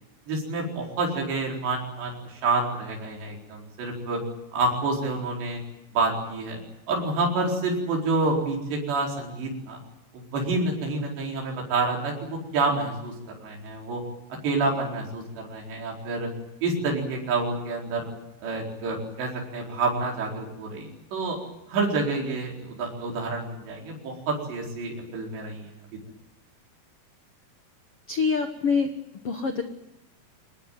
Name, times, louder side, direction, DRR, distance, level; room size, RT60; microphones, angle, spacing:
voice 1, 0.3-4.2 4.5-5.6 5.9-6.6 6.9-9.8 10.1-13.1 13.4-14.0 14.3-16.3 16.6-18.1 18.4-21.4 21.7-25.7, right 3 dB, 75° right, -1 dB, 6.7 m, -28 dB
voice 2, 28.1-28.9 29.2-29.6, left 5 dB, 75° left, 6 dB, 1.3 m, -25 dB
25.0 x 19.0 x 9.3 m, 0.88 s
omnidirectional pair, 5.0 m